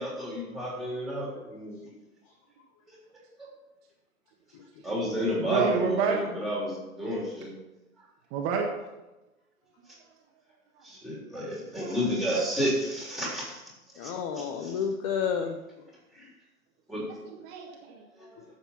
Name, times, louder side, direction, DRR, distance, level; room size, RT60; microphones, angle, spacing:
voice 1, 0.0-1.8 4.8-7.5 10.8-13.6 14.0-14.1 14.4-14.7 16.2-16.3 16.9-17.0 18.2-18.3, equal, ahead, -4 dB, 3.5 m, -31 dB
voice 2, 5.5-6.2 8.3-8.7 11.3-11.5 11.8-12.0 17.2-18.0, right 6 dB, 30° right, 1 dB, 1.5 m, -29 dB
voice 3, 14.0-15.8 18.4-18.5, left 7 dB, 25° left, 7 dB, 0.6 m, -31 dB
11.0 x 7.5 x 5.7 m, 1.0 s
figure-of-eight pair, 115°, 44 cm